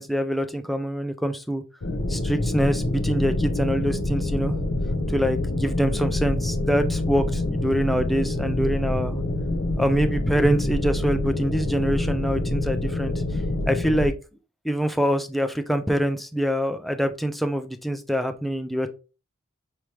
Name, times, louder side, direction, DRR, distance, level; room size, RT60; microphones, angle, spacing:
voice 1, 0.0-1.6 2.1-4.6 5.1-9.2 9.8-13.1 13.7-14.1 14.6-18.9, equal, ahead, 7 dB, 0.4 m, -25 dB
sound 1, 1.8-14.1, left 2 dB, 85° left, 0.8 m, -26 dB
4.9 x 3.3 x 2.9 m, 0.32 s
head